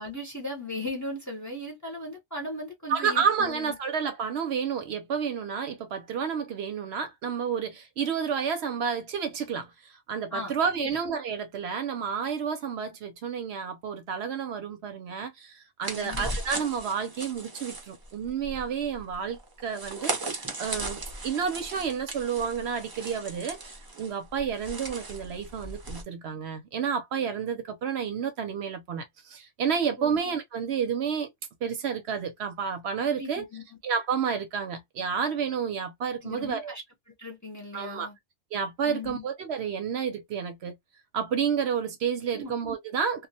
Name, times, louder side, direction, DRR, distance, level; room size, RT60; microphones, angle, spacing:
voice 1, 0.0-3.8 10.3-11.0 15.9-16.3 30.0-30.2 33.1-33.6 36.2-36.8 37.2-38.2 38.8-39.2 42.3-42.5, left 1 dB, 15° left, 0.7 m, -37 dB
voice 2, 2.9-23.6 24.0-31.3 31.6-33.4 33.8-36.7 37.7-38.1 38.5-40.8 41.1-43.3, right 7 dB, 70° right, 0.8 m, -30 dB
sound 1, 15.8-26.0, right 2 dB, 30° right, 0.4 m, -37 dB
2.2 x 2.1 x 2.6 m
omnidirectional pair, 1.2 m